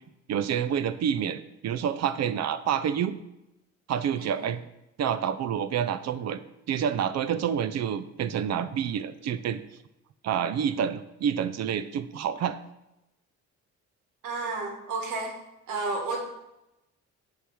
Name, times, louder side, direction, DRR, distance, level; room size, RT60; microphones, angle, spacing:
voice 1, 0.3-3.1 3.9-4.6 5.0-6.4 6.7-9.6 10.2-12.6, right 8 dB, 60° right, 12 dB, 0.5 m, -28 dB
voice 2, 4.2-4.5 14.2-15.4 15.7-16.2, right 3 dB, 85° right, 2 dB, 1.6 m, -32 dB
8.0 x 3.2 x 6.2 m, 0.91 s
cardioid pair, 90°, 30 cm